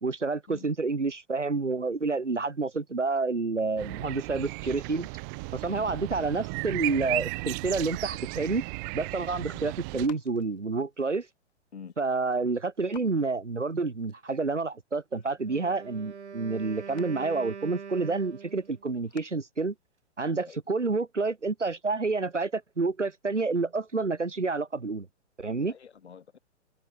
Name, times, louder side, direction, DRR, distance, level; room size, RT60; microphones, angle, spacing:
voice 1, 0.0-5.1 5.5-8.6 8.9-11.3 12.0-19.7 20.2-25.1 25.4-25.7, right 3 dB, 90° right, 1.6 m, -29 dB
sound 1, 3.8-10.1, right 33 dB, 20° right, 0.5 m, -35 dB
sound 2, 5.7-9.4 9.8-17.3 17.6-18.2 18.6-19.8 20.0-20.1 20.3-20.9 22.2-22.3, left 26 dB, 35° left, 5.7 m, -59 dB
Wind instrument woodwind instrument, 15.4-18.9, right 6 dB, 70° right, 4.1 m, -43 dB
voice 2, 25.5-26.4, left 7 dB, 65° left, 6.7 m, -47 dB
figure-of-eight pair, 120°, 35 cm